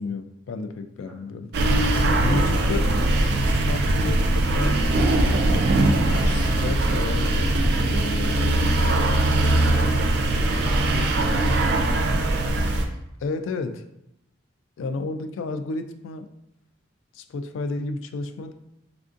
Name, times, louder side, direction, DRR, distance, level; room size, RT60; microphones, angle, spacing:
voice 1, 0.0-1.5 2.2-2.8 3.2-3.3 3.7-4.9 5.4-6.1 6.4-9.2 13.2-13.8 14.8-16.3 17.1-18.5, left 3 dB, 75° left, 8 dB, 0.3 m, -32 dB
sound 1, 1.5-12.9, right 1 dB, 55° right, 0.4 m, -21 dB
voice 2, 2.2-2.7 10.1-11.9, right 1 dB, 5° right, -5 dB, 0.5 m, -38 dB
sound 2, 6.0-6.6, left 1 dB, 45° left, 0.9 m, -38 dB
3.4 x 2.5 x 2.5 m, 0.82 s
head